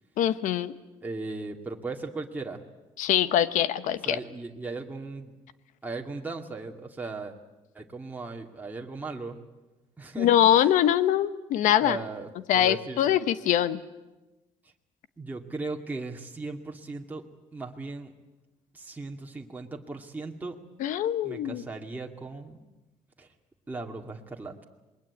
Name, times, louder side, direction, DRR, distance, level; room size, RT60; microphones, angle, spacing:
voice 1, 0.2-0.7 3.0-4.2 10.2-12.0 12.5-13.8 20.8-21.6, left 11 dB, 80° left, 14 dB, 1.2 m, -23 dB
voice 2, 1.0-2.6 4.1-5.3 5.8-7.3 7.7-9.4 10.0-10.3 11.8-12.3 12.5-13.1 15.2-17.2 17.5-18.1 18.7-20.6 21.2-22.6 23.2-23.3 23.7-24.6, right 3 dB, 15° right, 1 dB, 2.3 m, -37 dB
27.0 x 21.5 x 8.7 m, 1.1 s
cardioid pair, 100°, 13 cm